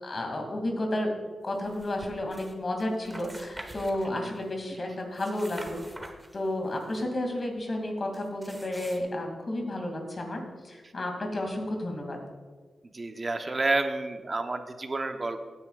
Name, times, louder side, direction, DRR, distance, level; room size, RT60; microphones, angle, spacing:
voice 1, 0.0-1.1 1.4-5.8 6.3-12.2, left 1 dB, 45° left, 2 dB, 2.5 m, -32 dB
sound 1, 1.6-2.5 2.8-4.5 5.0-7.0 8.1-9.0, right 1 dB, 15° right, 1.4 m, -46 dB
voice 2, 12.9-15.4, right 2 dB, 35° right, 6 dB, 0.9 m, -30 dB
16.5 x 9.5 x 2.5 m, 1.4 s
cardioid pair, 75°, 0 cm